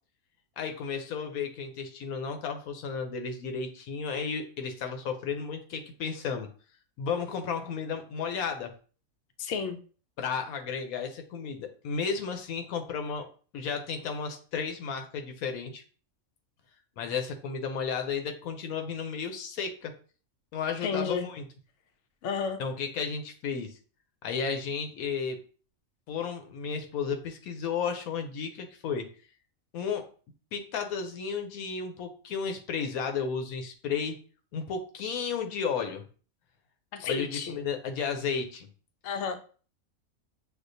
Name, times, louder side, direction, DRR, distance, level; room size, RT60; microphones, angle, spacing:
voice 1, 0.6-6.5 7.0-8.7 10.2-13.3 13.5-15.8 17.0-19.9 20.5-21.4 22.6-23.7 24.2-25.4 26.1-29.1 29.7-30.1 30.5-34.2 34.5-36.0 37.0-38.7, left 6 dB, 85° left, 5 dB, 1.1 m, -33 dB
voice 2, 9.4-9.8 20.8-21.3 22.2-22.6 36.9-37.6 39.0-39.4, left 5 dB, 65° left, 6 dB, 0.8 m, -31 dB
6.2 x 2.4 x 2.6 m, 0.39 s
omnidirectional pair, 1.5 m